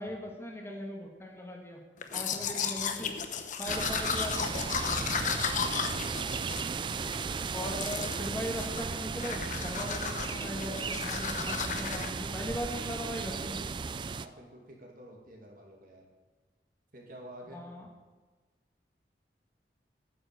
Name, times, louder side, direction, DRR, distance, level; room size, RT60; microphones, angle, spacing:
voice 1, 0.0-1.8 2.1-3.1 3.6-5.3 7.5-13.7 17.5-17.9, equal, 15° left, 0 dB, 1.4 m, -39 dB
Domestic sounds home sounds, 2.0-7.2 7.6-8.3 8.6-8.9 9.2-12.1, left 6 dB, 45° left, 0.8 m, -34 dB
voice 2, 2.1-2.5 5.6-6.1 13.9-16.1 16.9-17.6, right 1 dB, 50° right, 0 dB, 2.3 m, -50 dB
sound 1, 3.7-14.3, right 5 dB, 25° right, 0.3 m, -35 dB
9.3 x 7.8 x 7.7 m, 1.3 s
head